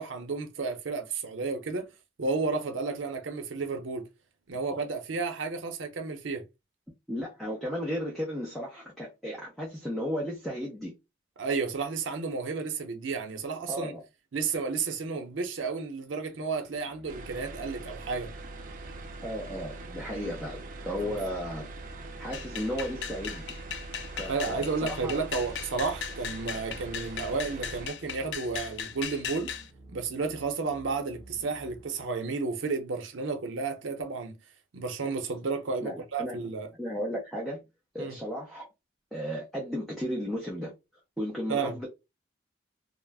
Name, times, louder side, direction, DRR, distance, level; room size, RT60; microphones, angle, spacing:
voice 1, 0.0-1.9 2.2-4.1 4.5-6.4 11.4-13.9 14.3-18.3 21.0-21.1 24.3-29.5 29.9-34.4 34.7-36.7 38.0-38.2 41.5-41.8, right 4 dB, 85° right, 0.6 m, -32 dB
voice 2, 7.1-10.9 13.7-14.0 19.2-21.7 22.0-23.5 24.1-25.2 35.8-36.4 36.8-37.6 37.9-38.7 39.1-40.7 41.2-41.9, equal, ahead, 0.5 m, -34 dB
sound 1, 16.6-32.1, right 1 dB, 45° left, 1.2 m, -53 dB
sound 2, 17.1-27.9, right 2 dB, 45° right, 0.4 m, -43 dB
sound 3, 22.3-29.7, left 8 dB, 65° left, 0.3 m, -38 dB
2.3 x 2.0 x 3.3 m
head